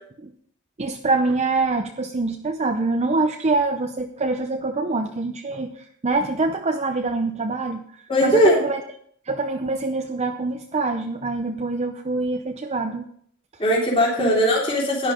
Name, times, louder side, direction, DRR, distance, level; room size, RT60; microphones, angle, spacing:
voice 1, 0.8-8.8 9.2-13.1 14.2-14.4, right 3 dB, 30° right, 5 dB, 0.7 m, -25 dB
voice 2, 8.1-8.6 13.6-15.1, equal, 25° left, -4 dB, 3.4 m, -19 dB
11.5 x 10.5 x 5.1 m, 0.64 s
head